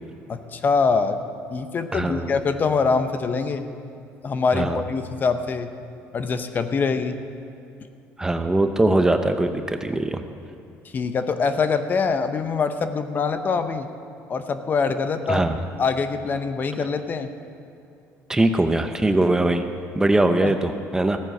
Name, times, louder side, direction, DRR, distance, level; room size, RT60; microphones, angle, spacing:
voice 1, 0.3-1.2 1.5-3.6 4.2-5.7 6.1-7.1 10.9-13.9 14.3-15.5 15.8-17.3 20.4-20.5, left 5 dB, 35° left, 9 dB, 0.8 m, -24 dB
voice 2, 1.9-2.3 4.5-4.8 8.2-10.2 15.3-15.6 18.3-19.6 19.9-21.2, right 2 dB, 10° right, 7 dB, 0.7 m, -21 dB
15.0 x 9.1 x 6.5 m, 2.6 s
cardioid pair, 115°, 5 cm